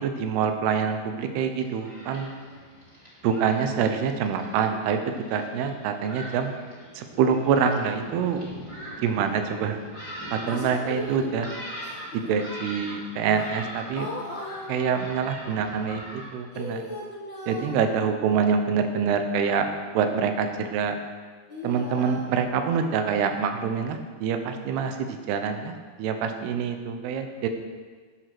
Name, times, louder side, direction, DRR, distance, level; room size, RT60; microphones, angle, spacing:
voice 1, 0.0-2.3 3.2-6.5 6.9-8.4 9.0-9.8 10.3-11.5 12.1-14.1 14.7-16.8 17.5-19.7 19.9-21.0 21.6-27.5, right 6 dB, 75° right, 6 dB, 2.8 m, -26 dB
Thunderstorm, 1.5-16.3, equal, 10° right, 3.1 m, -42 dB
voice 2, 2.3-2.6 5.1-5.5 10.4-11.3 11.8-12.1 13.3-13.4 13.9-15.0 16.5-17.9 21.5-22.3, left 1 dB, 65° left, -6 dB, 1.1 m, -37 dB
13.0 x 7.9 x 6.1 m, 1.5 s
omnidirectional pair, 5.0 m